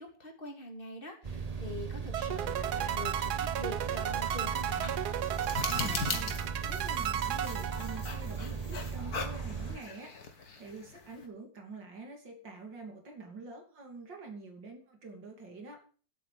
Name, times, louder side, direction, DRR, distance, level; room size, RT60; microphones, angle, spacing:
voice 1, 0.0-4.9, left 1 dB, 30° left, 3 dB, 3.0 m, -44 dB
sound 1, 1.2-9.8, right 6 dB, 30° right, 0.8 m, -38 dB
sound 2, 2.1-8.4, right 10 dB, 65° right, 1.3 m, -34 dB
sound 3, 3.8-11.3, left 4 dB, 60° left, 2.3 m, -41 dB
voice 2, 5.7-10.2 10.6-15.9, right 3 dB, 85° right, 3 dB, 3.6 m, -47 dB
10.5 x 8.5 x 7.5 m, 0.41 s
omnidirectional pair, 1.9 m